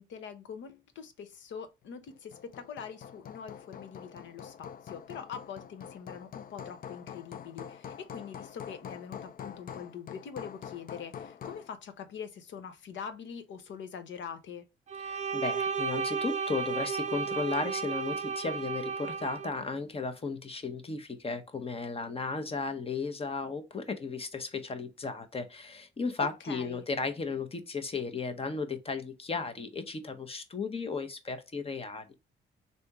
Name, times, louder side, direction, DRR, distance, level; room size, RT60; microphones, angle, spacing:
voice 1, 0.0-14.6 26.2-26.8, left 7 dB, 70° left, 0.8 m, -43 dB
Hammer, 2.1-11.7, left 8 dB, 45° left, 0.4 m, -45 dB
Bowed string instrument, 14.9-19.5, right 5 dB, 35° right, 0.5 m, -33 dB
voice 2, 15.0-32.1, left 4 dB, 30° left, 0.8 m, -35 dB
3.4 x 2.8 x 4.6 m
cardioid pair, 90°, 20 cm